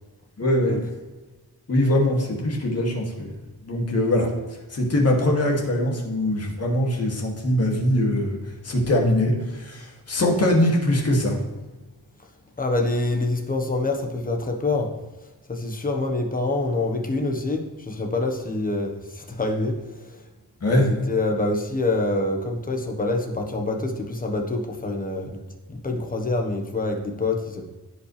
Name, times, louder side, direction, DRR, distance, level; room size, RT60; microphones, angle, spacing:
voice 1, 0.4-0.8 1.7-3.3 3.6-4.3 4.7-8.4 8.6-11.4 20.6-20.9, left 1 dB, 40° left, -1 dB, 2.5 m, -22 dB
voice 2, 12.6-14.9 15.5-20.2 20.7-25.4 25.7-27.7, left 2 dB, 20° left, 2 dB, 1.3 m, -26 dB
15.5 x 5.6 x 3.4 m, 1.2 s
wide cardioid pair, 155°, 38 cm